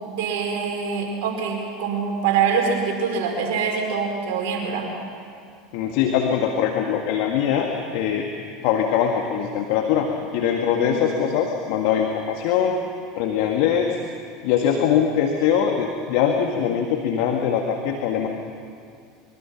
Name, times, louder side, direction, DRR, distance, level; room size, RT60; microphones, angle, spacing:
voice 1, 0.0-4.9 10.8-11.0, right 6 dB, 65° right, 0 dB, 5.2 m, -24 dB
voice 2, 5.7-8.3 8.6-10.1 10.3-12.8 13.2-14.0 14.4-18.3, left 8 dB, 60° left, 2 dB, 1.9 m, -22 dB
24.5 x 23.5 x 6.1 m, 2.3 s
hypercardioid pair, 80°, 0 cm